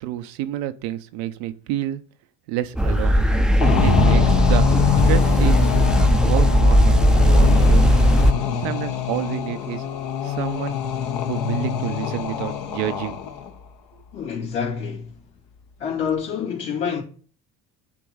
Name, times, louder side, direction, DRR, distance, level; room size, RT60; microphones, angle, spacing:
voice 1, 0.0-2.0 2.5-3.2 3.8-4.7 5.0-7.0 7.3-8.0 8.6-9.8 10.2-10.8 11.3-13.2, right 13 dB, 80° right, 0.8 m, -29 dB
sound 1, 2.8-8.3, equal, ahead, 0.5 m, -17 dB
sound 2, 3.6-13.5, left 8 dB, 65° left, 1.2 m, -24 dB
voice 2, 14.1-15.2 15.8-17.0, left 7 dB, 80° left, 2.6 m, -27 dB
8.4 x 3.0 x 6.2 m
hypercardioid pair, 70°, 39 cm